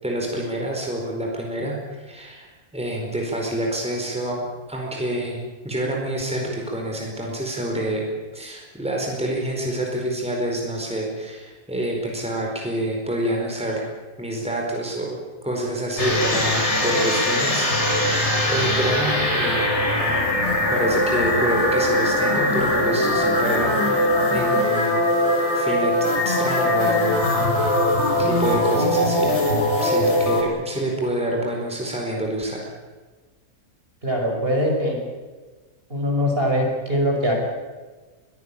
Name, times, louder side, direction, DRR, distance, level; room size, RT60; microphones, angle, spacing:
voice 1, 0.0-4.4 4.7-8.0 8.3-13.8 14.2-17.7 18.0-19.7 20.7-25.0 25.5-27.8 28.2-29.3 29.8-32.8, right 1 dB, 5° right, -1 dB, 4.5 m, -27 dB
sound 1, 16.0-30.4, left 1 dB, 50° left, 4.9 m, -21 dB
voice 2, 34.0-35.0 35.9-37.3, equal, 40° right, 0 dB, 6.1 m, -22 dB
22.5 x 17.5 x 8.7 m, 1.3 s
omnidirectional pair, 1.5 m